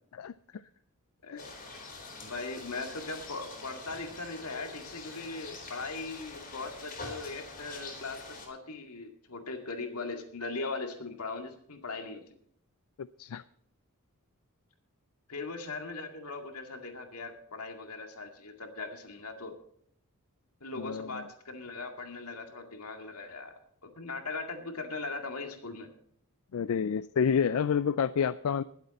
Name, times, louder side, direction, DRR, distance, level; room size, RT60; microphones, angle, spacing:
voice 1, 1.2-1.5 2.2-12.2 15.3-19.5 20.6-23.5 23.8-25.9, left 3 dB, 85° left, 4 dB, 2.1 m, -39 dB
sound 1, 1.4-8.5, left 3 dB, 40° left, 3.9 m, -45 dB
voice 2, 13.0-13.4 20.8-21.2 26.5-28.6, left 7 dB, 70° left, 15 dB, 0.4 m, -29 dB
20.5 x 8.0 x 4.2 m, 0.64 s
head